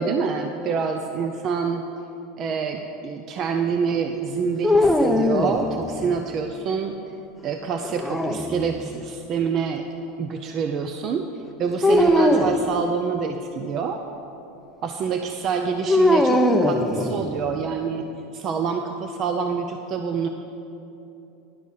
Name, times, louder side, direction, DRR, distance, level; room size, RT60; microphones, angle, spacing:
voice 1, 0.0-1.9 2.4-6.9 7.4-9.9 10.2-11.3 11.6-14.0 14.8-18.1 18.3-20.3, right 6 dB, 40° right, 5 dB, 0.5 m, -26 dB
sound 1, 4.6-6.2 7.8-9.0 11.8-12.6 15.9-17.5, left 1 dB, 5° left, 0.6 m, -21 dB
11.5 x 5.3 x 6.5 m, 2.9 s
supercardioid pair, 120°, 0 cm